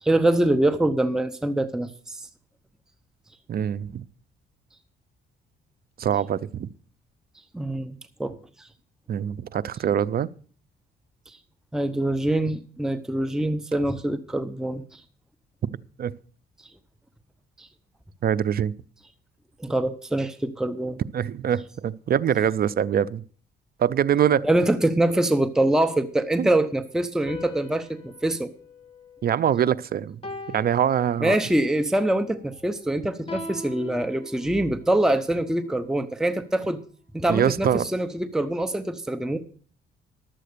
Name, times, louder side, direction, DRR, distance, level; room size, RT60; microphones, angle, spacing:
voice 1, 0.0-2.2 7.5-8.4 11.7-15.0 17.6-17.7 19.6-21.0 24.4-28.5 31.2-36.8 37.1-39.4, right 1 dB, 5° right, 0.8 m, -24 dB
voice 2, 3.5-4.0 6.0-6.7 9.1-10.3 16.0-16.1 18.2-18.7 21.1-23.2 23.8-24.5 26.4-26.5 29.2-30.2 30.5-31.4 37.3-37.8, right 9 dB, 50° right, 0.6 m, -24 dB
sound 1, 27.2-29.7 30.2-31.7 33.3-35.0, left 2 dB, 30° left, 1.9 m, -41 dB
11.5 x 7.6 x 6.7 m
cardioid pair, 90°, 20 cm